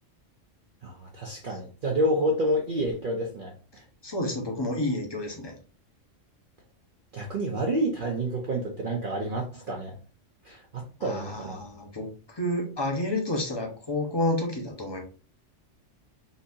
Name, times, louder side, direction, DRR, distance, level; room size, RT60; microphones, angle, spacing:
voice 1, 0.8-3.8 7.1-9.9 10.4-11.6, right 1 dB, 50° right, -1 dB, 0.7 m, -29 dB
voice 2, 4.0-5.5 11.0-15.0, left 1 dB, 25° left, 1 dB, 0.8 m, -30 dB
4.0 x 2.7 x 2.6 m, 0.37 s
omnidirectional pair, 1.3 m